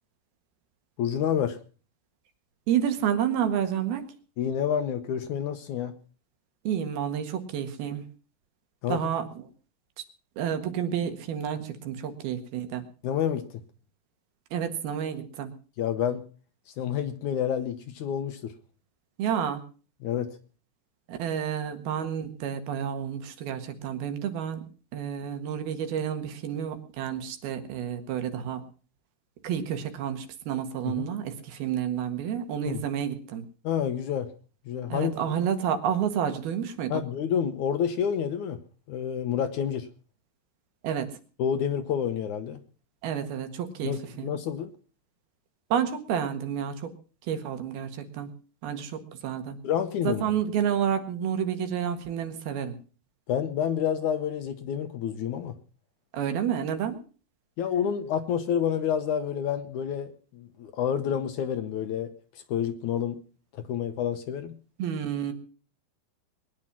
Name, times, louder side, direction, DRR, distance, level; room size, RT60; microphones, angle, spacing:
voice 1, 1.0-1.6 4.4-5.9 8.8-9.0 13.0-13.6 15.8-16.2 16.7-18.5 20.0-20.4 30.9-31.1 32.7-32.8 33.6-34.3 34.7-35.1 36.9-38.6 38.9-39.9 41.4-42.6 43.8-44.7 49.6-50.2 53.3-55.6 57.6-63.2 63.5-64.6, left 8 dB, 70° left, 2.1 m, -29 dB
voice 2, 2.7-4.0 6.7-8.0 8.9-9.3 10.0-10.1 10.4-12.8 14.5-15.5 19.2-19.6 21.1-24.6 24.9-28.6 29.4-33.4 34.9-37.0 40.8-41.1 43.0-44.3 45.7-46.9 47.3-48.3 48.6-49.6 50.0-52.8 56.1-57.0 64.8-65.3, right 9 dB, 85° right, 3.6 m, -30 dB
21.5 x 10.5 x 6.0 m
omnidirectional pair, 4.3 m